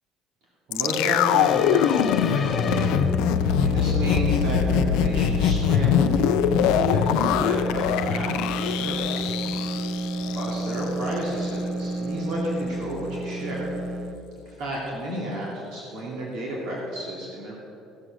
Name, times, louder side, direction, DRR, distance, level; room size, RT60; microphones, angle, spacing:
sound 1, 0.7-10.8 11.1-11.2, left 9 dB, 85° left, 0.5 m, -23 dB
voice 1, 0.7-3.0 3.6-6.1 6.5-9.3 10.3-13.7 14.4-17.6, equal, 65° right, -5 dB, 2.6 m, -31 dB
sound 2, 1.3-3.7, left 5 dB, 25° left, 0.5 m, -35 dB
sound 3, 2.5-14.2, right 2 dB, 40° right, 0.7 m, -30 dB
14.5 x 7.8 x 6.1 m, 2.7 s
cardioid pair, 175°, 0 cm